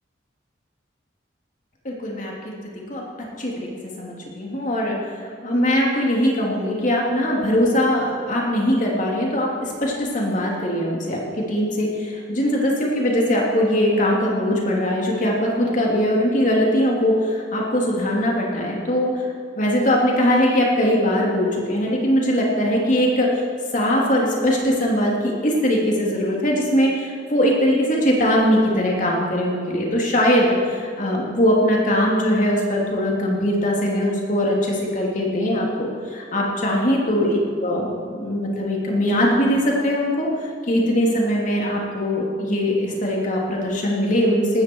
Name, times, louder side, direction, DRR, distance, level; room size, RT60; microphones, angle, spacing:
voice 1, 1.8-2.3 2.7-3.0 3.4-3.7 4.0-23.4 23.7-44.6, equal, 45° left, -2 dB, 3.1 m, -21 dB
18.5 x 13.5 x 4.7 m, 2.2 s
head